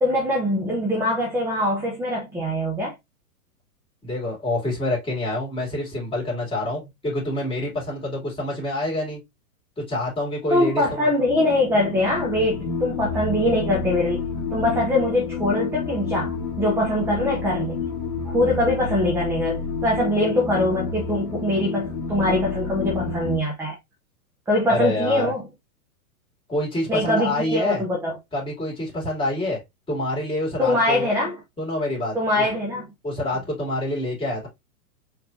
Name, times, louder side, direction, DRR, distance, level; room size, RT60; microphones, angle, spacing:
voice 1, 0.0-2.9 10.5-14.2 14.5-17.8 18.3-23.8 24.5-25.5 26.9-28.2 30.6-31.4 32.1-32.9, left 1 dB, 5° right, 0.7 m, -23 dB
voice 2, 4.0-9.2 9.8-11.1 24.7-25.3 26.5-27.8 28.3-29.6 29.9-31.1 31.6-32.4 33.0-34.5, left 1 dB, 10° left, 2.7 m, -27 dB
sound 1, 11.3-23.4, left 5 dB, 40° left, 2.0 m, -29 dB
4.7 x 3.4 x 2.7 m
hypercardioid pair, 140°, 47 cm